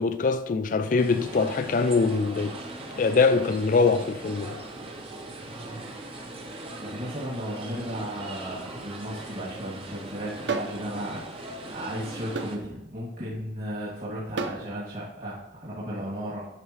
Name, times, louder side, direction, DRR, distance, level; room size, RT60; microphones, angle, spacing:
voice 1, 0.0-2.6 3.0-4.6, left 4 dB, 45° left, 0.4 m, -23 dB
sound 1, 1.0-12.6, right 2 dB, 30° right, 0.9 m, -40 dB
voice 2, 6.8-16.5, equal, 50° right, 2.3 m, -35 dB
sound 2, 10.5-10.8 12.4-12.6 14.4-14.6, right 4 dB, 75° right, 0.5 m, -30 dB
12.5 x 4.8 x 3.1 m
head